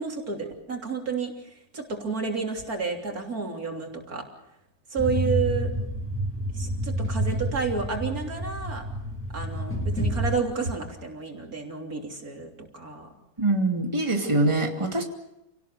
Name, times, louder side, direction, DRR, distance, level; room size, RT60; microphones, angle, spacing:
voice 1, 0.0-1.3 1.7-4.3 4.9-5.7 6.5-8.9 9.3-13.1 14.2-14.8, right 5 dB, 85° right, 2 dB, 3.8 m, -31 dB
sound 1, 5.0-10.4, right 1 dB, 10° left, 2.7 m, -29 dB
voice 2, 13.4-15.0, right 2 dB, 20° right, 2 dB, 2.6 m, -24 dB
28.5 x 18.0 x 6.8 m, 0.86 s
omnidirectional pair, 1.5 m